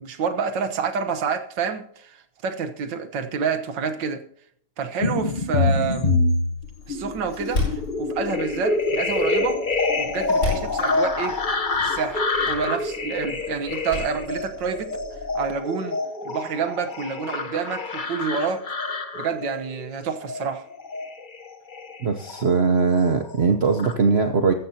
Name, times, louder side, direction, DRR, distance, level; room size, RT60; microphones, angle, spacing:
voice 1, 0.0-4.2 4.8-6.2 6.9-9.6 10.0-11.4 11.8-14.9 15.4-18.6 19.2-20.6, right 5 dB, 85° right, 8 dB, 1.9 m, -28 dB
sound 1, 5.0-22.8 23.1-23.9, left 3 dB, 30° left, 1.1 m, -26 dB
Door, 6.6-15.6, left 3 dB, 50° left, 7.2 m, -35 dB
voice 2, 22.0-24.5, right 5 dB, 50° right, 6 dB, 0.9 m, -20 dB
14.0 x 14.0 x 2.8 m, 0.66 s
omnidirectional pair, 1.9 m